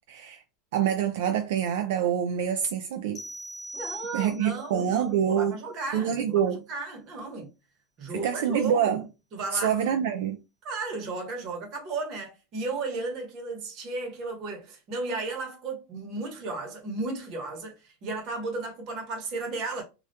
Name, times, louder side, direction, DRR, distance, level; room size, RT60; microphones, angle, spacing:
voice 1, 0.1-0.4 0.7-3.2 4.1-5.6 5.9-6.6 8.1-9.0 9.5-10.4, right 8 dB, 70° right, 0.3 m, -26 dB
sound 1, 3.2-4.7, right 1 dB, 15° left, 0.5 m, -40 dB
voice 2, 3.7-6.4 6.7-7.5 8.0-9.0 9.3-9.7 10.6-19.8, right 3 dB, 40° right, 0.9 m, -34 dB
2.3 x 2.1 x 2.6 m
supercardioid pair, 145°, 0 cm